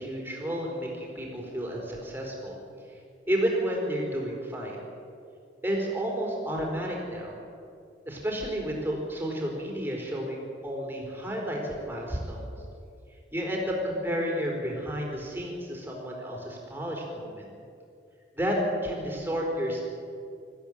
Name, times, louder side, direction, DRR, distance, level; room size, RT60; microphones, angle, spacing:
voice 1, 0.0-2.6 3.3-4.8 5.6-7.4 8.1-12.5 13.3-17.4 18.3-18.6 18.8-19.8, equal, 10° right, -2 dB, 4.2 m, -31 dB
20.5 x 14.5 x 9.0 m, 2.5 s
head